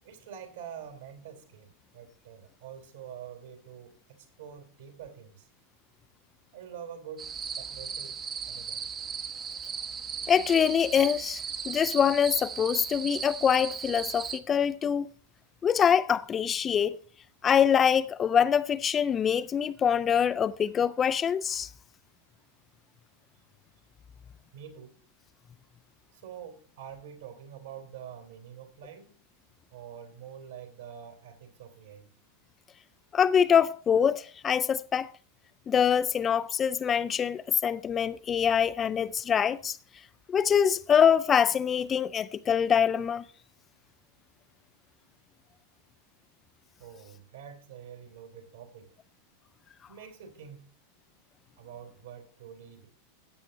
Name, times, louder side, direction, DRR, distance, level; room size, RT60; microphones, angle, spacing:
voice 1, 0.0-5.5 6.5-8.2 8.5-8.8 24.5-25.0 26.1-29.2 29.7-32.1 46.8-49.0 49.9-50.7 51.6-52.9, right 8 dB, 65° right, 3.8 m, -46 dB
sound 1, 7.2-14.4, right 6 dB, 25° right, 1.0 m, -37 dB
voice 2, 10.3-15.1 15.6-17.0 17.4-21.7 33.1-35.1 35.7-39.8 40.3-43.2, left 8 dB, 25° left, 0.5 m, -24 dB
15.5 x 8.8 x 3.0 m
figure-of-eight pair, 90°, 0 cm